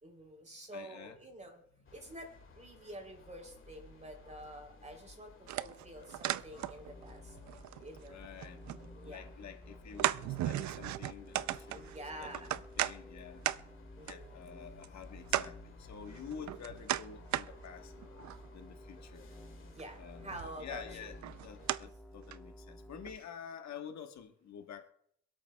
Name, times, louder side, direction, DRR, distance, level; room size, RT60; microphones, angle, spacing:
voice 1, 0.0-1.6 1.9-5.3 5.6-7.4 7.8-8.2 8.9-9.3 11.7-12.5 14.0-14.4 19.6-21.1, right 1 dB, 25° right, 3 dB, 3.4 m, -48 dB
voice 2, 0.7-1.2 8.1-8.6 9.0-11.9 12.2-13.4 14.0-17.9 18.5-19.3 20.0-24.9, left 7 dB, 65° left, 5 dB, 1.4 m, -49 dB
sound 1, 1.8-21.7, left 4 dB, 45° left, 2.0 m, -58 dB
sound 2, 5.5-7.1 7.4-8.9 9.3-9.4 10.0-12.9 13.4-13.6 14.1-14.2 14.8-14.9 15.3-15.5 16.1-17.5 18.0-18.5 19.8-20.0 20.3-20.7 21.2-21.8 22.3-22.4 23.1-23.2, right 14 dB, 70° right, 0.5 m, -36 dB
sound 3, 6.6-23.2, equal, 5° left, 1.4 m, -53 dB
25.5 x 8.5 x 2.3 m, 0.70 s
cardioid pair, 90°, 30 cm